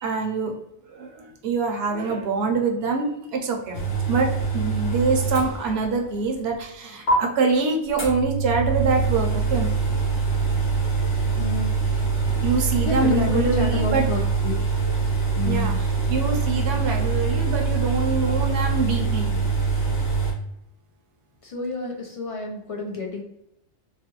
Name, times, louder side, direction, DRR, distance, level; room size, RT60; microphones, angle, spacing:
voice 1, 0.0-0.5 0.9-3.8 4.1-9.7 12.4-14.0 15.4-19.4, right 4 dB, 65° right, 2 dB, 0.9 m, -25 dB
sound 1, 3.7-6.1 6.4-6.5 7.1-7.2 8.0-20.3, right 4 dB, 75° left, 1.5 m, -24 dB
voice 2, 11.4-11.7 12.8-14.6 15.3-15.8 21.4-23.2, left 4 dB, 45° left, 0 dB, 0.4 m, -29 dB
3.2 x 2.2 x 2.9 m, 0.80 s
omnidirectional pair, 1.2 m